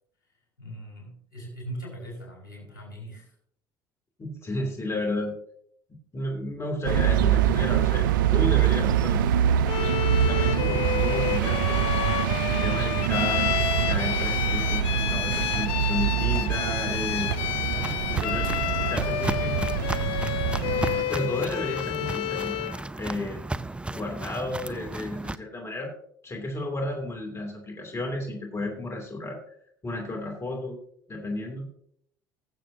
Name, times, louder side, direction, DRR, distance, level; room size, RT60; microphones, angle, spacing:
voice 1, 0.6-3.3 20.9-21.4, right 1 dB, 80° left, -2 dB, 4.8 m, -40 dB
voice 2, 4.2-5.3 6.1-9.2 10.3-11.8 12.4-13.5 13.9-17.3 18.1-18.5 18.9-19.7 21.1-22.5 23.0-23.4 23.9-25.9 26.2-29.4 29.8-30.8 31.1-31.6, left 1 dB, 25° left, 1 dB, 2.9 m, -32 dB
sound 1, 6.8-21.0, right 10 dB, 75° right, 0.4 m, -25 dB
Bowed string instrument, 9.7-22.8, left 13 dB, 60° left, 0.5 m, -30 dB
Walk footsteps, 16.9-25.3, right 2 dB, 10° right, 0.5 m, -35 dB
20.0 x 7.5 x 2.8 m, 0.68 s
hypercardioid pair, 65°, 11 cm